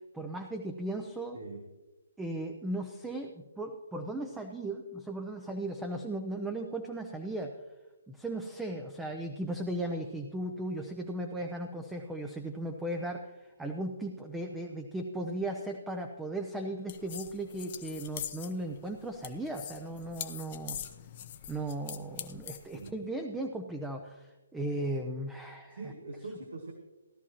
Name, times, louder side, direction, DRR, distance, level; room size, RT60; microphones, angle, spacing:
voice 1, 0.1-1.4 2.2-7.6 8.1-20.8 21.5-25.9, right 1 dB, 5° right, 4 dB, 0.7 m, -37 dB
sound 1, 16.9-22.9, left 10 dB, 40° left, 0.8 m, -43 dB
voice 2, 25.7-26.7, right 3 dB, 70° right, 3 dB, 1.5 m, -42 dB
16.5 x 12.0 x 3.0 m, 1.1 s
figure-of-eight pair, 140°, 0 cm